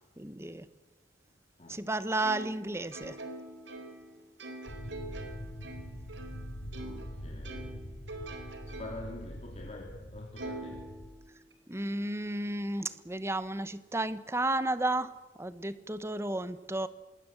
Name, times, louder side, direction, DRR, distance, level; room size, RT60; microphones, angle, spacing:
voice 1, 0.2-0.7 1.7-3.2 11.7-16.9, right 2 dB, 15° right, 13 dB, 1.1 m, -33 dB
Plucked string instrument, 2.2-7.1 7.4-9.2 9.6-9.7 10.4-11.5, right 2 dB, 80° right, 3.8 m, -44 dB
sound 1, 4.7-11.1, equal, 80° left, 4.2 m, -44 dB
voice 2, 6.8-7.8 8.6-10.8, left 1 dB, 35° left, 0 dB, 3.0 m, -46 dB
26.0 x 20.5 x 8.0 m, 1.2 s
head